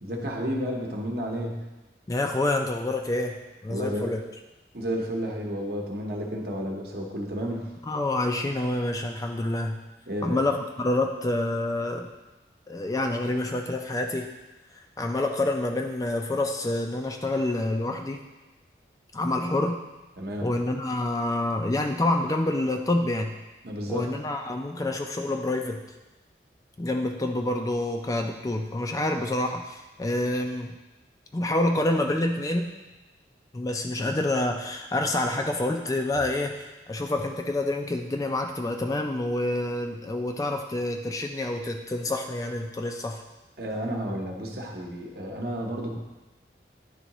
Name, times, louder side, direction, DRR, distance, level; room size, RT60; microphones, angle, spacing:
voice 1, 0.0-1.7 3.7-4.1 4.7-7.7 10.1-10.4 20.2-20.5 23.6-24.1 43.6-46.0, equal, 60° right, 0 dB, 1.0 m, -31 dB
voice 2, 2.1-4.2 7.9-9.8 10.2-12.1 12.7-14.3 15.0-18.2 19.1-19.8 20.4-23.3 23.9-25.8 26.8-30.7 31.3-32.7 33.5-43.2, left 2 dB, 20° left, 4 dB, 0.3 m, -27 dB
9.9 x 3.7 x 3.0 m, 1.1 s
head